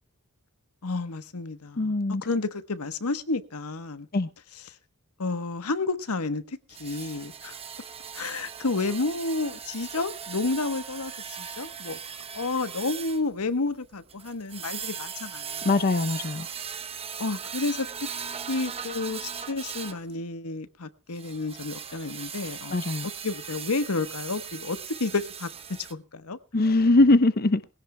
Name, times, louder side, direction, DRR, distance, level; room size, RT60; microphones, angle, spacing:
voice 1, 0.8-4.1 4.7-4.8 5.2-7.5 8.1-12.0 12.3-15.7 17.2-18.1 18.5-22.8 23.2-25.5 25.8-26.4, left 3 dB, 90° left, 1.2 m, -31 dB
voice 2, 1.8-2.2 4.1-4.3 15.6-16.5 22.7-23.1 26.5-27.6, left 2 dB, 45° left, 0.7 m, -21 dB
sound 1, 6.7-20.0 21.1-25.9, right 7 dB, 25° right, 1.0 m, -39 dB
21.5 x 16.5 x 2.3 m
head